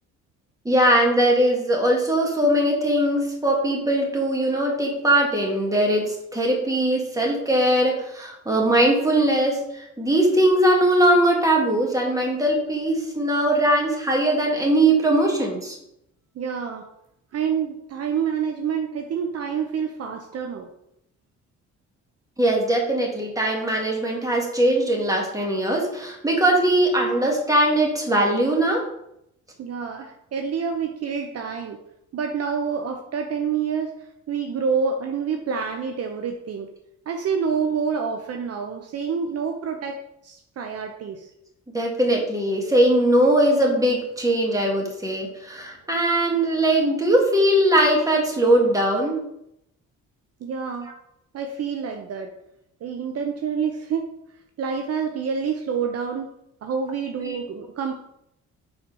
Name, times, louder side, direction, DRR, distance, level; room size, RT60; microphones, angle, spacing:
voice 1, 0.6-15.8 22.4-28.9 41.7-49.2 57.2-57.4, right 1 dB, 10° right, -1 dB, 1.8 m, -20 dB
voice 2, 16.4-16.9 17.3-20.7 29.6-31.8 32.1-33.9 34.3-36.7 37.1-40.0 40.2-41.3 50.4-50.9 51.3-52.3 52.8-54.1 54.6-56.3 56.6-57.9, right 6 dB, 55° right, 4 dB, 0.7 m, -27 dB
4.4 x 4.0 x 5.4 m, 0.78 s
cardioid pair, 90°, 30 cm